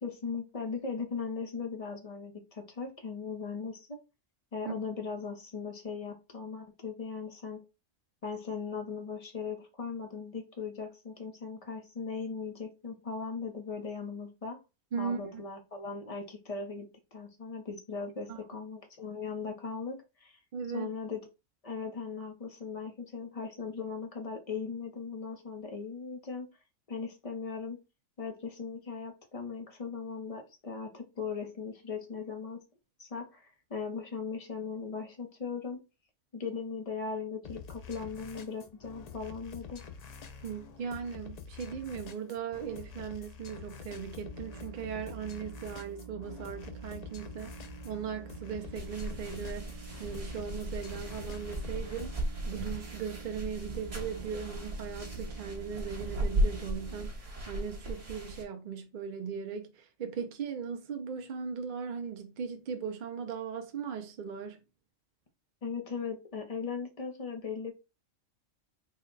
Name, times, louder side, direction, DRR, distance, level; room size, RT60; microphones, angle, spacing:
voice 1, 0.0-4.0 4.5-7.6 8.2-14.6 15.0-20.4 20.7-21.2 21.6-26.5 26.9-27.8 28.2-32.6 33.0-35.8 36.3-39.8 65.6-67.7, left 5 dB, 35° left, 0.6 m, -38 dB
voice 2, 14.9-15.4 18.3-18.4 20.5-21.0 40.4-47.5 47.8-52.2 52.5-64.6, right 6 dB, 60° right, 0.5 m, -38 dB
sound 1, 37.4-52.2, left 6 dB, 75° left, 0.3 m, -47 dB
sound 2, 44.2-57.1, right 5 dB, 85° right, 1.2 m, -48 dB
sound 3, 48.7-58.4, right 1 dB, 30° right, 1.0 m, -36 dB
3.9 x 2.1 x 3.8 m
omnidirectional pair, 1.3 m